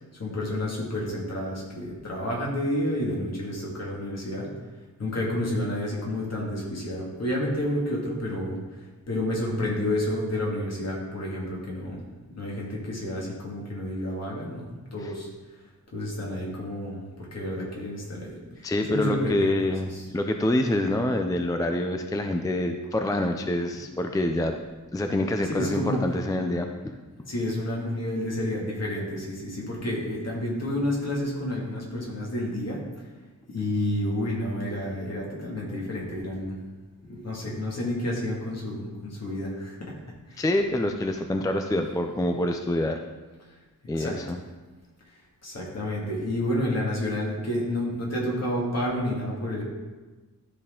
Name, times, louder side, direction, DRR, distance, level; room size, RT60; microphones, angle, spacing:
voice 1, 0.2-4.5 5.0-8.6 9.1-12.0 12.4-15.3 15.9-20.1 25.5-26.0 27.2-32.8 33.5-36.6 37.0-39.9 40.3-40.4 44.0-44.2 45.4-49.6, left 1 dB, 45° left, -3 dB, 2.0 m, -30 dB
voice 2, 18.6-24.6 24.9-26.9 40.4-43.0 43.9-44.4, left 1 dB, 10° left, 5 dB, 0.3 m, -26 dB
12.5 x 4.2 x 3.7 m, 1.3 s
wide cardioid pair, 160°, 36 cm